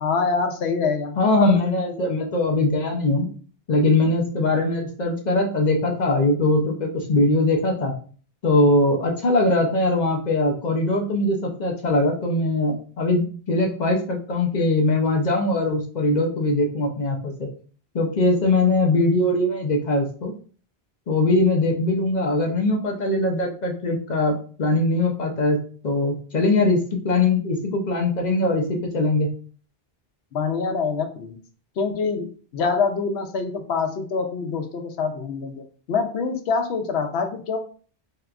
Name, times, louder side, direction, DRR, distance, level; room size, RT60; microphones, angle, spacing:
voice 1, 0.0-1.6 30.3-31.3 31.8-37.6, left 5 dB, 90° left, 6 dB, 0.9 m, -25 dB
voice 2, 1.2-3.3 3.7-7.9 8.4-17.5 17.9-20.3 21.1-26.8 27.0-29.3, left 2 dB, 50° left, 2 dB, 0.6 m, -21 dB
3.5 x 2.8 x 2.3 m, 0.42 s
omnidirectional pair, 1.0 m